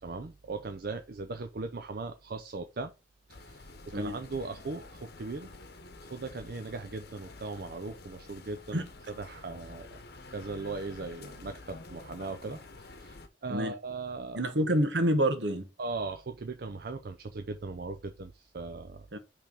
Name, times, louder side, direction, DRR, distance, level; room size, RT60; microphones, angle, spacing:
voice 1, 0.0-2.9 3.3-3.7 3.9-5.5 6.1-9.9 10.3-14.4 15.8-19.1, right 3 dB, 55° right, 0.5 m, -39 dB
sound 1, 3.3-13.3, left 2 dB, 60° left, 0.9 m, -49 dB
voice 2, 14.3-15.6 19.1-19.2, right 1 dB, 70° right, 1.2 m, -27 dB
5.7 x 3.4 x 5.1 m
head